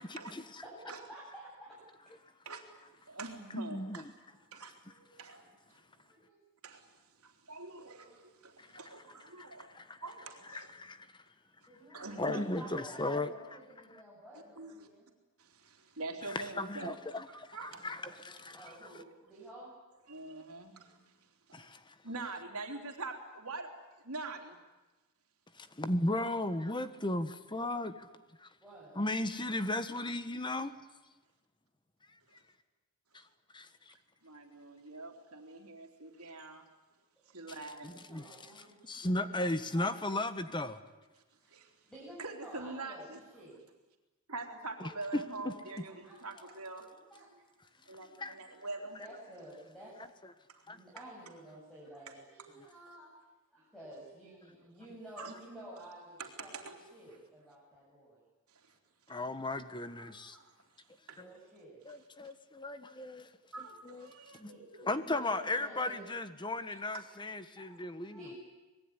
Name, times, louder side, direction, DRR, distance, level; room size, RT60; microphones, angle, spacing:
voice 1, 0.0-0.6 3.5-4.0 8.6-8.9 9.4-10.0 10.5-11.1 11.9-13.3 16.2-18.7 21.5-21.9 25.6-28.1 28.4-28.5 28.9-30.7 33.5-33.9 37.8-38.3 38.6-40.8 44.8-45.5 48.1-48.4 50.7-50.8 52.6-52.7 59.1-60.4 61.2-61.3 61.8-63.3 63.8-64.5 64.8-68.3, left 2 dB, 20° left, 11 dB, 1.3 m, -36 dB
voice 2, 0.6-1.5 4.9-5.1 6.1-6.4 11.7-15.1 17.7-19.7 21.0-21.1 28.6-28.9 37.2-37.6 37.8-38.8 39.2-39.9 41.4-41.5 41.8-43.0 43.3-43.6 45.5-46.5 46.9-47.3 47.8-48.6 49.0-50.0 50.7-53.1 53.5-58.2 61.1-61.8 64.4-64.6 65.0-66.1 67.6-68.4, right 1 dB, ahead, -7 dB, 7.9 m, -52 dB
voice 3, 3.1-4.0 4.5-4.8 5.2-5.4 6.6-6.9 7.2-9.7 10.0-10.7 11.9-12.4 14.6-14.9 15.4-17.0 17.3-17.9 18.6-19.1 20.1-21.0 21.5-21.7 22.0-23.8 24.0-24.6 34.2-36.6 37.3-37.9 41.5-41.7 42.2-43.2 44.3-46.9 47.9-49.0 55.2-55.4 56.2-56.8 58.5-58.7 60.0-60.5 61.1-61.2 63.5-64.9 66.9-67.0, right 3 dB, 75° right, 4 dB, 3.4 m, -44 dB
25.5 x 21.0 x 9.8 m, 1.1 s
head